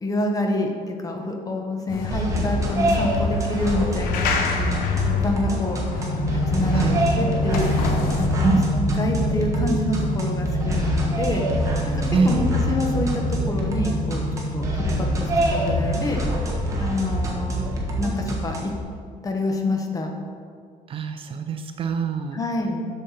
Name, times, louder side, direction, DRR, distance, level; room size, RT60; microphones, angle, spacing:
voice 1, 0.0-5.8 6.3-11.6 11.9-16.2 16.8-17.7 18.0-18.7 19.2-20.1 22.3-22.9, left 2 dB, 25° left, 3 dB, 0.9 m, -27 dB
zoo bathroom, 1.9-8.3, left 6 dB, 75° left, 0.9 m, -29 dB
sound 1, 2.1-18.8, equal, 20° right, 1.2 m, -26 dB
sound 2, 5.9-16.2, equal, 60° left, 2.0 m, -27 dB
voice 2, 8.2-8.6 12.1-12.4 20.9-22.4, right 5 dB, 35° right, 6 dB, 0.4 m, -24 dB
7.5 x 6.5 x 4.2 m, 2.1 s
cardioid pair, 150°, 15 cm